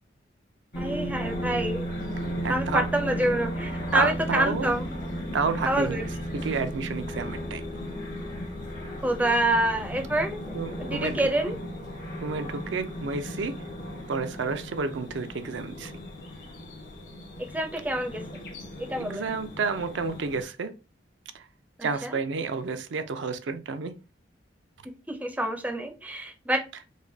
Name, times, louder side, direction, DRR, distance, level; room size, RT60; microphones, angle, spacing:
sound 1, 0.7-20.4, equal, 65° left, 1.6 m, -35 dB
voice 1, 0.8-1.9 2.5-4.9 5.7-6.0 9.0-10.5 10.8-11.5 17.4-18.2 18.8-19.3 21.8-22.2 25.1-26.6, right 1 dB, 10° right, 0.4 m, -27 dB
voice 2, 2.4-2.9 3.9-4.7 5.3-6.0 6.3-7.6 10.5-11.2 12.2-13.5 14.1-15.9 19.0-20.7 21.3-21.4 21.8-23.9, right 4 dB, 80° right, 0.5 m, -30 dB
4.8 x 2.2 x 2.6 m
head